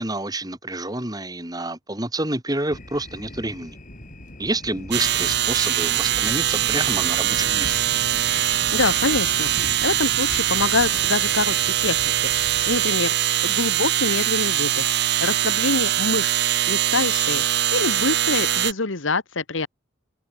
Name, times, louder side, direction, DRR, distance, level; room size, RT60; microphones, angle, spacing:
voice 1, 0.0-3.8 4.4-7.8, right 2 dB, 20° right, 3.1 m, -28 dB
sound 1, 2.7-12.9, equal, 40° left, 7.8 m, -39 dB
sound 2, 4.9-18.7, right 12 dB, 60° right, 1.3 m, -22 dB
voice 2, 8.7-9.5 9.8-12.3 12.6-13.1 13.4-14.9 15.2-16.3 16.7-17.4 17.7-19.7, left 3 dB, 80° left, 1.6 m, -25 dB
head